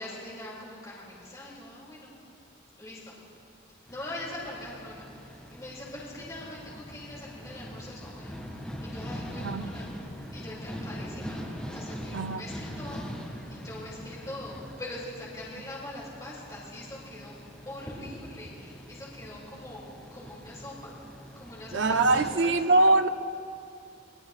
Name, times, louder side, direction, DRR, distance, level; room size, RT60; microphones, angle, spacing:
voice 1, 0.0-2.1 2.8-3.1 3.9-9.9 10.3-11.4 11.7-17.3 17.6-21.0 21.4-22.5, left 1 dB, 20° left, -6 dB, 2.8 m, -42 dB
sound 1, 3.9-22.3, equal, 5° left, 1.9 m, -42 dB
voice 2, 9.4-9.7 12.1-12.5 21.7-23.1, right 2 dB, 70° right, 8 dB, 0.6 m, -23 dB
24.5 x 18.5 x 2.4 m, 2.6 s
head